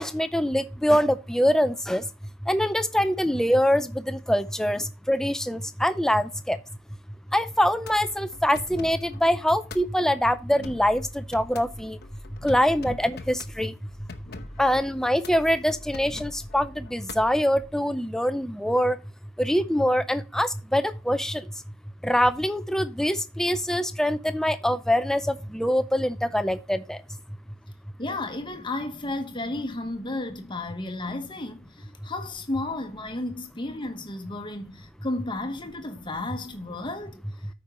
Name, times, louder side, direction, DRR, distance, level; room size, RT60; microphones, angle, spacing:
voice 1, 0.0-2.1 2.4-6.6 7.3-12.0 12.4-13.7 14.6-19.0 19.4-21.5 22.0-27.0, equal, ahead, 0.4 m, -24 dB
sound 1, 7.5-17.7, left 2 dB, 50° left, 0.8 m, -44 dB
voice 2, 28.0-37.2, left 2 dB, 20° left, 1.0 m, -33 dB
13.0 x 5.2 x 2.9 m
head